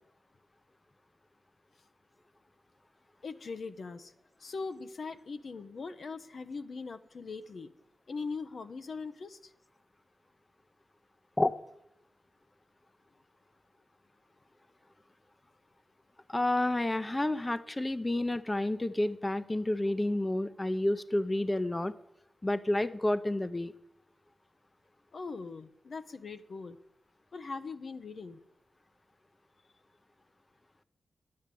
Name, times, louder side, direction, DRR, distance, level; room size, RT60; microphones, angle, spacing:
voice 1, 3.2-4.1 4.4-7.7 8.1-9.5 25.1-26.8 27.3-28.4, left 4 dB, 70° left, 9 dB, 0.7 m, -41 dB
voice 2, 16.3-21.9 22.4-23.7, left 1 dB, 25° left, 13 dB, 0.6 m, -30 dB
9.5 x 8.5 x 7.6 m, 0.82 s
cardioid pair, 45°, 0 cm